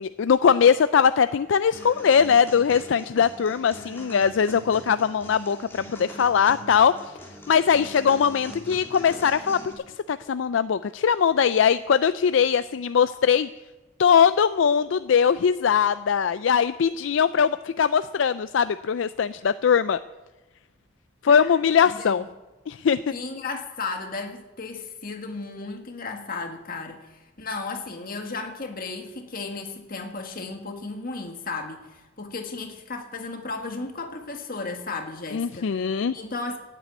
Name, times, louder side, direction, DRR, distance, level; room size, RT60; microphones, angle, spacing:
voice 1, 0.0-6.9 7.5-9.6 10.1-13.5 14.0-20.0 21.2-22.2 22.7-23.1 35.3-36.1, left 7 dB, 70° left, 13 dB, 0.4 m, -21 dB
sound 1, 1.7-9.7, equal, 10° left, 2.8 m, -42 dB
voice 2, 21.8-22.3 23.1-35.8 36.1-36.6, left 3 dB, 50° left, 4 dB, 1.7 m, -34 dB
12.5 x 9.1 x 9.3 m, 1.1 s
head